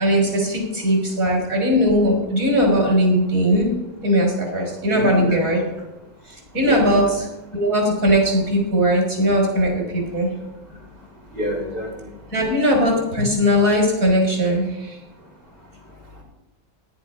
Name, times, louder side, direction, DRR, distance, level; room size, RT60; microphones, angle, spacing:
voice 1, 0.0-3.7 4.0-5.6 6.3-7.3 7.5-10.3 12.3-15.0, equal, 45° right, -1 dB, 4.5 m, -19 dB
voice 2, 4.9-5.4 6.6-7.0 11.4-11.9, equal, 60° right, -1 dB, 5.3 m, -27 dB
16.5 x 10.5 x 5.6 m, 0.96 s
omnidirectional pair, 2.1 m